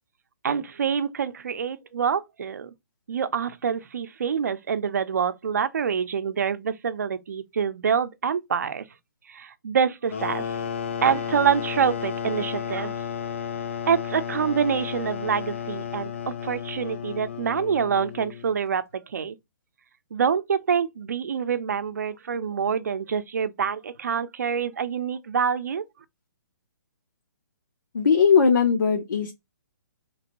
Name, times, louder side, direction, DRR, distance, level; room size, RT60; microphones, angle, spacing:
voice 1, 0.4-2.7 3.1-8.8 9.3-10.4 11.0-12.9 13.9-19.4 20.1-25.8, right 7 dB, 60° right, 0.5 m, -26 dB
sound 1, 10.1-18.6, left 8 dB, 40° left, 0.3 m, -33 dB
voice 2, 27.9-29.3, left 6 dB, 80° left, 0.7 m, -19 dB
3.1 x 2.5 x 2.9 m
hypercardioid pair, 175°, 10 cm